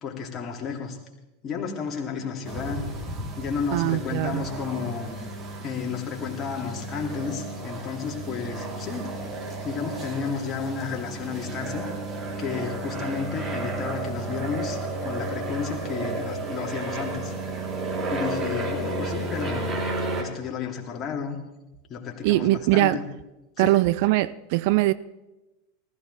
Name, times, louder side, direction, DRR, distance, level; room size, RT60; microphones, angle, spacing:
voice 1, 0.0-1.0 1.4-2.9 3.4-5.2 5.6-9.1 9.6-11.9 12.4-17.3 18.1-19.8 20.1-21.4 21.9-23.0 23.6-23.8, left 6 dB, 30° left, 3.0 m, -32 dB
sound 1, 2.4-20.2, right 2 dB, 25° right, 3.6 m, -32 dB
voice 2, 3.7-4.5 22.2-23.0 23.6-24.9, right 18 dB, 55° right, 0.4 m, -21 dB
19.0 x 14.5 x 3.5 m
figure-of-eight pair, 85°, 0 cm